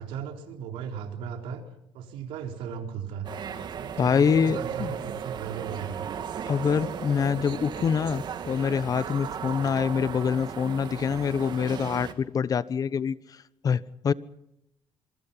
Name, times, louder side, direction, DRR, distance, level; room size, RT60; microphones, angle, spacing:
voice 1, 0.0-1.6 1.9-3.3 3.8-6.1, right 7 dB, 90° right, 4 dB, 4.3 m, -36 dB
sound 1, 3.2-12.1, right 8 dB, 55° right, 2.7 m, -36 dB
voice 2, 4.0-4.9 6.5-13.1 13.6-14.1, left 7 dB, 45° left, 17 dB, 1.1 m, -25 dB
27.0 x 25.0 x 5.8 m, 0.79 s
cardioid pair, 105°, 9 cm